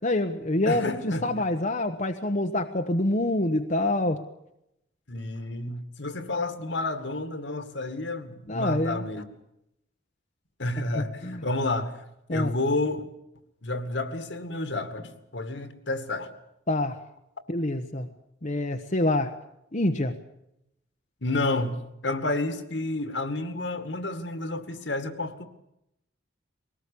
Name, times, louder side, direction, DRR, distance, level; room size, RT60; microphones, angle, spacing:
voice 1, 0.0-4.2 8.5-9.0 10.9-11.4 12.3-12.5 16.7-17.0 17.5-18.1 18.4-19.3 19.7-20.1, left 1 dB, 40° left, 5 dB, 1.1 m, -26 dB
voice 2, 0.6-1.3 5.1-9.2 10.6-11.9 12.3-13.0 13.6-16.3 21.2-25.5, left 2 dB, 70° left, 9 dB, 2.2 m, -30 dB
22.0 x 18.5 x 8.6 m, 0.82 s
head